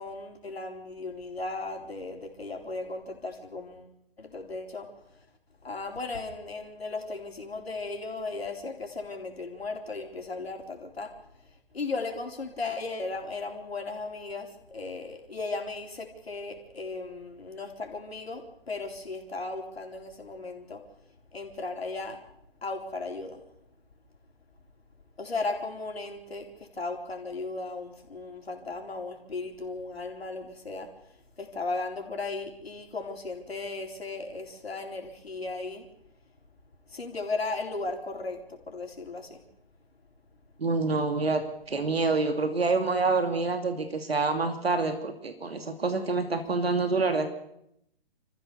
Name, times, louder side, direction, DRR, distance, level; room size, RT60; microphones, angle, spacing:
voice 1, 0.0-3.9 4.2-4.9 5.6-11.1 11.7-20.8 21.3-22.2 22.6-23.4 25.2-30.9 31.4-35.9 36.9-39.4, left 3 dB, 85° left, 3 dB, 4.1 m, -36 dB
voice 2, 40.6-41.4 41.7-47.3, right 3 dB, 85° right, 7 dB, 2.7 m, -27 dB
27.5 x 14.5 x 6.9 m, 0.78 s
hypercardioid pair, 140°, 30 cm